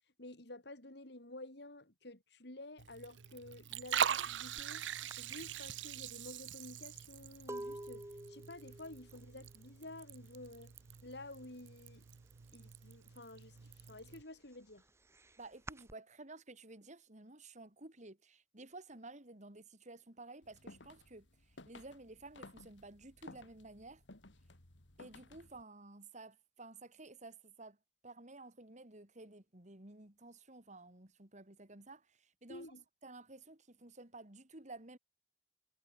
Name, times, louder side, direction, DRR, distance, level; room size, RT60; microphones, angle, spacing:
voice 1, 0.2-4.9 5.2-10.7 11.0-12.0 12.5-14.8 32.5-32.8, left 2 dB, 65° left, 3.7 m, -51 dB
Liquid, 2.8-14.2, right 8 dB, 85° right, 0.7 m, -42 dB
sound 1, 4.6-4.7 5.1-10.8 11.0-11.5 11.8-13.0 13.4-15.9, right 1 dB, 15° right, 1.2 m, -50 dB
voice 2, 15.4-24.0 25.0-27.8 28.0-32.7 33.0-35.0, right 2 dB, 40° right, 3.1 m, -53 dB
sound 2, 20.4-25.6, left 2 dB, 80° left, 2.9 m, -57 dB
head